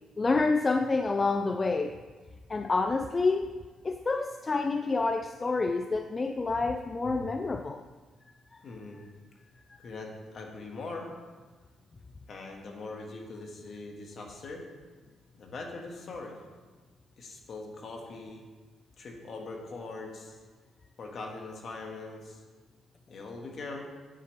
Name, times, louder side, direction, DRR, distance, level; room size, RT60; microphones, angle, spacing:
voice 1, 0.2-2.0 2.5-3.6 3.8-7.8, left 3 dB, 30° left, 7 dB, 0.4 m, -28 dB
voice 2, 8.6-9.0 9.8-11.1 12.3-14.6 15.4-16.3 17.2-18.4 19.0-20.4 21.0-22.4 23.1-23.9, left 3 dB, 55° left, 1 dB, 1.7 m, -41 dB
9.9 x 7.6 x 3.3 m, 1.4 s
cardioid pair, 90°, 0 cm